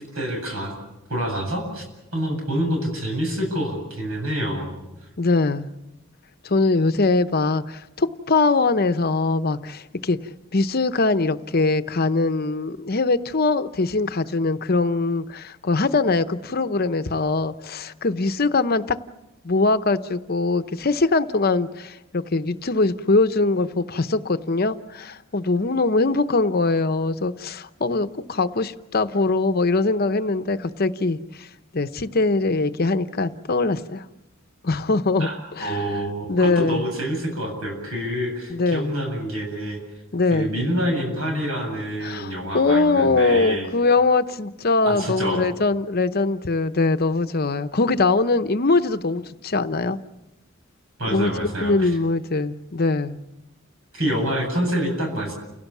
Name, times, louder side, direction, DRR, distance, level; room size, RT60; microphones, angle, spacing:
voice 1, 0.1-0.7 1.1-1.8 2.1-4.7 35.2-39.8 40.3-43.7 44.8-45.4 51.0-51.9 53.9-55.3, equal, 85° right, 8.0 m, -27 dB
voice 2, 5.2-5.7 6.4-10.2 10.5-19.0 19.4-31.5 31.7-34.0 34.6-35.8 36.3-36.8 38.5-38.9 40.1-40.5 42.0-50.0 51.1-53.2, left 3 dB, 45° left, 0.8 m, -22 dB
29.5 x 17.5 x 7.2 m
head